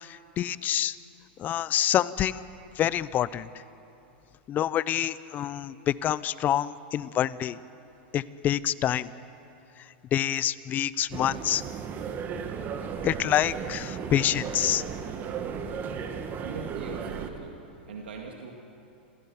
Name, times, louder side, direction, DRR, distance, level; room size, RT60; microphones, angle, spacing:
voice 1, 0.0-1.0 1.4-2.4 2.8-3.5 4.5-7.6 8.1-9.1 10.1-11.6 13.0-14.8, left 11 dB, 30° left, 18 dB, 0.6 m, -27 dB
sound 1, 11.1-17.3, right 6 dB, 35° right, 1.6 m, -35 dB
voice 2, 16.4-17.6 17.9-18.5, right 5 dB, 85° right, 1 dB, 2.2 m, -41 dB
27.5 x 16.0 x 7.1 m, 2.8 s
hypercardioid pair, 120°, 6 cm